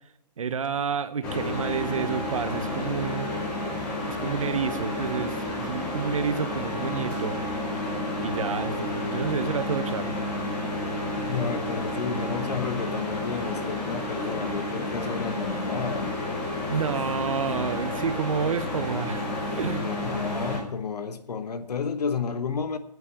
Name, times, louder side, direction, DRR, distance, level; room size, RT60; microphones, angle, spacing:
voice 1, 0.4-3.3 4.1-7.4 8.2-10.2 16.6-19.2 19.6-19.9, right 6 dB, 50° right, 0.8 m, -29 dB
sound 1, 1.2-20.6, left 1 dB, 5° left, 0.7 m, -31 dB
voice 2, 11.2-16.2 19.8-22.8, left 5 dB, 70° left, 1.2 m, -31 dB
9.4 x 8.2 x 8.7 m
hypercardioid pair, 175°, 21 cm